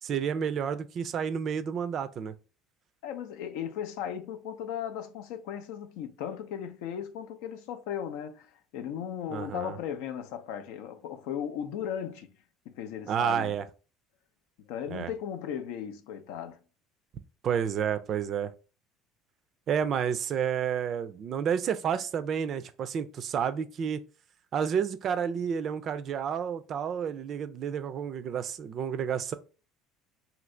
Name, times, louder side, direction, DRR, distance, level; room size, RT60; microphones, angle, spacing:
voice 1, 0.0-2.3 9.3-9.8 13.1-13.6 14.9-15.1 17.4-18.5 19.7-24.0 24.5-29.3, right 8 dB, 50° right, 0.3 m, -30 dB
voice 2, 3.0-12.4 12.7-13.6 14.6-16.6, left 9 dB, 80° left, 0.4 m, -36 dB
2.7 x 2.6 x 3.1 m
supercardioid pair, 95°, 0 cm